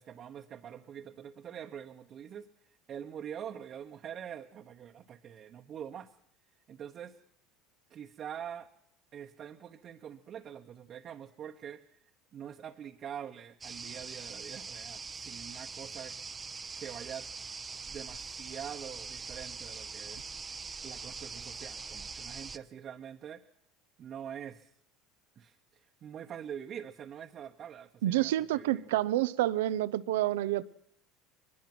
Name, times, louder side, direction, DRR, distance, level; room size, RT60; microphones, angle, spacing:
voice 1, 0.0-2.5 2.9-6.1 6.7-7.2 7.9-8.7 9.1-11.8 12.3-16.2 16.8-17.3 17.9-20.2 20.8-23.4 24.0-24.7 25.4-25.6 26.0-28.8, right 9 dB, 45° right, 1.1 m, -44 dB
sound 1, 13.6-22.6, right 5 dB, 25° right, 0.8 m, -43 dB
voice 2, 28.0-30.6, right 14 dB, 85° right, 0.7 m, -28 dB
22.0 x 20.0 x 6.2 m
supercardioid pair, 95°, 0 cm